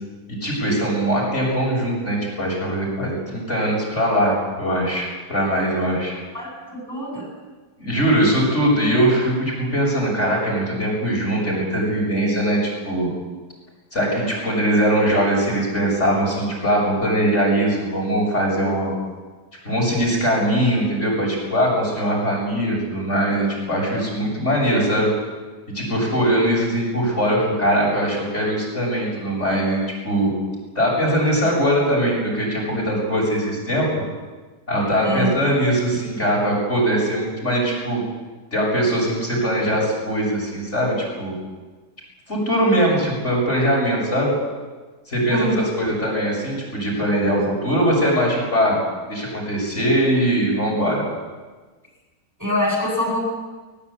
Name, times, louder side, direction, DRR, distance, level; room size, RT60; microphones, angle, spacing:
voice 1, 0.4-6.1 7.8-13.1 13.9-18.9 19.6-25.1 25.7-29.8 30.0-30.3 30.8-33.9 34.7-38.0 38.5-41.3 42.3-44.3 45.1-48.8 49.1-51.0, equal, 40° left, -3 dB, 7.2 m, -21 dB
voice 2, 6.3-7.2 35.0-35.3 45.3-45.6 52.4-53.2, equal, 10° right, -2 dB, 8.1 m, -24 dB
20.5 x 20.0 x 8.6 m, 1.3 s
omnidirectional pair, 1.8 m